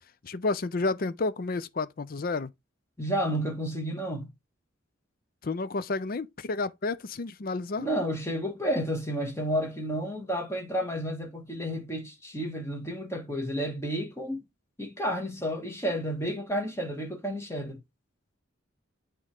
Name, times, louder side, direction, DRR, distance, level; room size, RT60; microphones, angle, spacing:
voice 1, 0.2-2.5 5.4-7.9, left 3 dB, 45° left, 0.5 m, -30 dB
voice 2, 3.0-4.3 7.8-14.4 14.8-17.8, equal, 15° left, 2.1 m, -31 dB
8.9 x 3.6 x 3.5 m
head